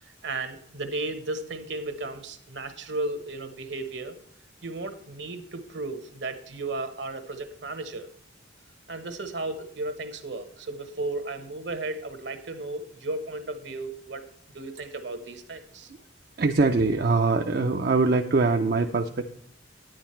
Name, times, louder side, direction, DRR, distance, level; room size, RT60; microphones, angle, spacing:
voice 1, 0.0-4.2 4.6-8.1 8.9-14.2 14.5-15.9, right 2 dB, 70° right, 9 dB, 1.2 m, -34 dB
voice 2, 16.4-19.2, right 3 dB, 55° right, 4 dB, 0.5 m, -23 dB
9.7 x 9.1 x 4.4 m, 0.67 s
head